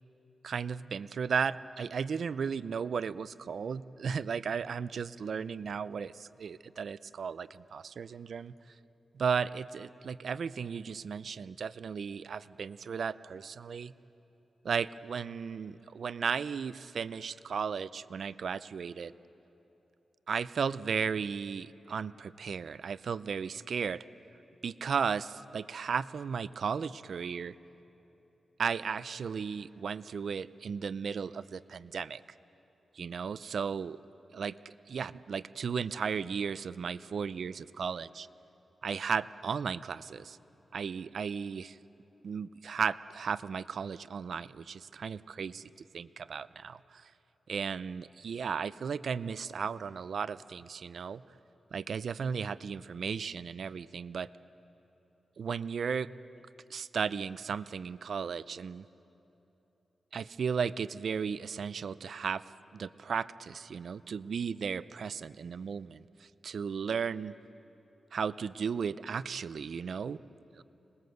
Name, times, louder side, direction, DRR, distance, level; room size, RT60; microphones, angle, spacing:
voice 1, 0.4-8.5 9.1-13.9 14.6-19.1 20.3-24.0 24.6-27.5 28.6-32.2 32.9-34.0 34.3-38.3 38.8-40.4 40.7-41.8 42.2-47.1 47.5-51.2 51.7-54.3 55.4-56.1 56.7-58.8 60.1-62.4 62.7-67.3 68.1-70.2 70.5-70.6, right 6 dB, 65° right, 16 dB, 0.5 m, -35 dB
26.5 x 20.5 x 7.9 m, 3.0 s
wide cardioid pair, 140°, 0 cm